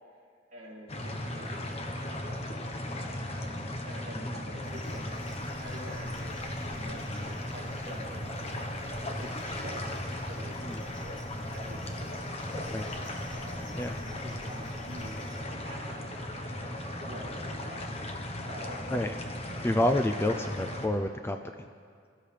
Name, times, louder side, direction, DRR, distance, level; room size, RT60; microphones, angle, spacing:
voice 1, 0.5-1.7 2.0-2.6 3.3-6.3 6.7-8.9 9.2-11.2 11.5-12.2 13.3-16.1 16.6-18.0 18.4-19.0 19.7-20.0, equal, 45° right, -5 dB, 3.3 m, -47 dB
sound 1, 0.9-20.9, left 1 dB, 35° left, 1.1 m, -37 dB
sound 2, 4.6-15.4, left 1 dB, 85° left, 3.2 m, -52 dB
voice 2, 12.5-12.9 13.7-13.9 18.9-19.1 19.6-21.4, left 1 dB, 15° left, 6 dB, 0.4 m, -29 dB
24.0 x 13.5 x 3.4 m, 2.1 s
head